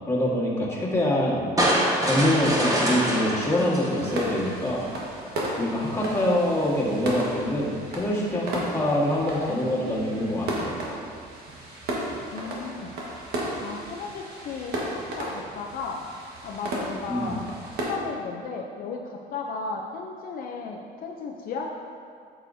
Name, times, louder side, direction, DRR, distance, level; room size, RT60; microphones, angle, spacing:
voice 1, 0.1-1.4 2.0-4.9 5.6-10.7 17.1-17.4, left 1 dB, 15° left, -5 dB, 1.6 m, -25 dB
sound 1, 1.6-4.8, right 1 dB, 20° right, 1.3 m, -25 dB
sound 2, 4.0-17.9, right 1 dB, 70° right, 1.5 m, -34 dB
voice 2, 12.3-12.9 13.6-16.0 16.4-17.4 17.8-21.7, left 4 dB, 60° left, 0 dB, 0.6 m, -35 dB
8.2 x 7.0 x 2.7 m, 2.2 s
cardioid pair, 110°, 17 cm